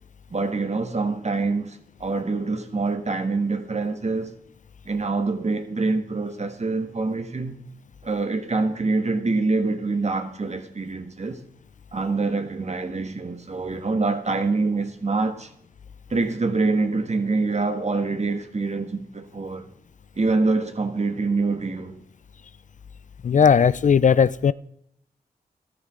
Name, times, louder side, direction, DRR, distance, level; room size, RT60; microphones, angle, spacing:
voice 1, 0.3-4.4 4.8-7.6 8.0-11.4 11.9-15.5 16.1-19.7 20.2-22.0, right 3 dB, 40° right, 1.6 m, -25 dB
voice 2, 23.2-24.5, left 7 dB, 50° left, 0.4 m, -17 dB
13.5 x 13.0 x 3.8 m
cardioid pair, 45°, 17 cm